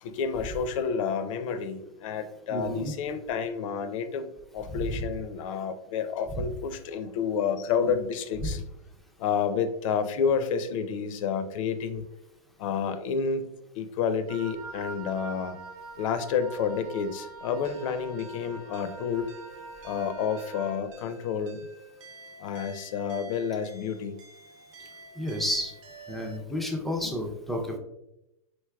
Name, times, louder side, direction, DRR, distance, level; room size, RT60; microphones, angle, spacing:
voice 1, 0.0-4.3 4.5-8.6 9.2-12.0 12.6-13.4 13.7-15.6 16.0-19.3 19.8-21.7 22.4-24.1 27.0-27.1, left 6 dB, 55° left, 10 dB, 0.5 m, -30 dB
voice 2, 2.5-2.9 4.7-4.8 6.3-6.4 7.8-7.9 8.4-8.5 25.2-25.7 26.1-27.8, equal, ahead, 1 dB, 0.4 m, -31 dB
Wind instrument woodwind instrument, 14.3-20.8, right 3 dB, 70° right, 1.1 m, -44 dB
sound 1, 17.6-26.4, right 3 dB, 55° right, 0.7 m, -50 dB
4.7 x 4.0 x 2.2 m, 0.86 s
supercardioid pair, 145°, 20 cm